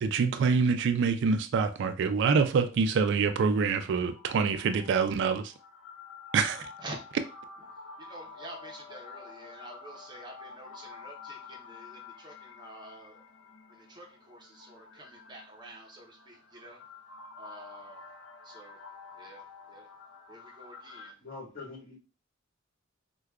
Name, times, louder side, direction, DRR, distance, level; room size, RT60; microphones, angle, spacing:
voice 1, 0.0-5.5 6.3-6.7, right 5 dB, 60° right, 0.3 m, -26 dB
sound 1, 2.7-21.1, left 4 dB, 70° left, 0.5 m, -49 dB
voice 2, 8.0-13.2 13.7-16.8 17.4-18.1 18.4-18.8 19.1-19.9 20.3-21.2, right 1 dB, 20° right, 0.6 m, -48 dB
voice 3, 21.2-22.0, left 3 dB, 45° left, 1.6 m, -43 dB
4.7 x 2.2 x 2.3 m
head